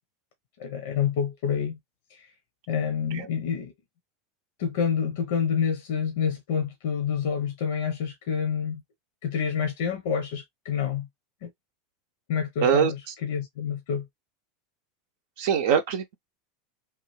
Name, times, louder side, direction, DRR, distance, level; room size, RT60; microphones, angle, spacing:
voice 1, 0.6-1.8 2.1-2.3 2.7-3.7 4.6-8.8 9.2-11.1 11.4-11.5 12.3-14.1, left 7 dB, 70° left, 0.7 m, -28 dB
voice 2, 12.6-13.1 15.4-16.2, right 8 dB, 70° right, 0.5 m, -23 dB
3.0 x 2.3 x 3.1 m
hypercardioid pair, 100°, 0 cm